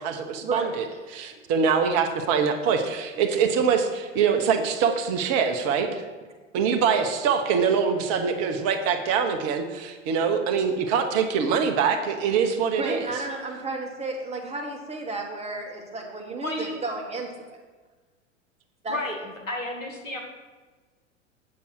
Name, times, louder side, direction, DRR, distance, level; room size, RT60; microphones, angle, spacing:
voice 1, 0.0-6.0 6.5-13.0, right 6 dB, 40° right, 6 dB, 1.0 m, -24 dB
voice 2, 12.8-17.6 18.8-19.0, right 2 dB, 15° right, 1 dB, 1.6 m, -32 dB
voice 3, 16.4-16.8 18.9-19.2 19.5-20.2, left 1 dB, 85° left, 1 dB, 1.8 m, -31 dB
8.5 x 6.9 x 4.7 m, 1.3 s
figure-of-eight pair, 90°, 38 cm